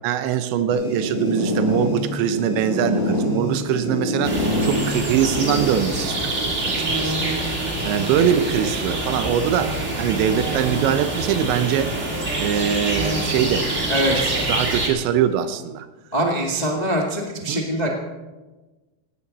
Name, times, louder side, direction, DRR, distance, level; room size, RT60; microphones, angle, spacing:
voice 1, 0.0-6.3 6.6-7.2 7.6-11.9 12.4-13.7 14.1-14.2 14.5-15.9 17.5-17.6, right 9 dB, 90° right, 10 dB, 3.3 m, -23 dB
sound 1, 0.7-10.1 10.9-11.5 11.8-11.9 12.2-12.3 13.2-14.3, left 1 dB, 35° left, 7.5 m, -28 dB
sound 2, 4.2-14.9, right 2 dB, 25° right, 1.9 m, -26 dB
voice 2, 13.9-14.4 16.1-17.9, right 1 dB, 70° left, -1 dB, 0.4 m, -23 dB
17.5 x 17.5 x 4.3 m, 1.2 s
omnidirectional pair, 5.0 m